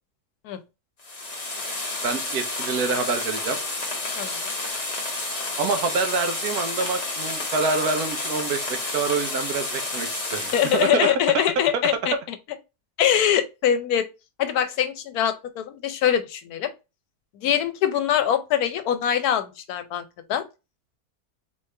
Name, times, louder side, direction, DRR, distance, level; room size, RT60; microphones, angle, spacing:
sound 1, 1.0-10.9, left 2 dB, 30° left, 0.9 m, -30 dB
voice 1, 2.0-3.6 5.6-11.1, right 4 dB, 90° right, 1.4 m, -26 dB
voice 2, 4.2-4.5 10.5-12.4 13.0-14.0 14.4-16.7 17.4-20.0 20.3-20.4, left 10 dB, 80° left, 1.2 m, -23 dB
4.0 x 3.1 x 3.3 m
omnidirectional pair, 1.6 m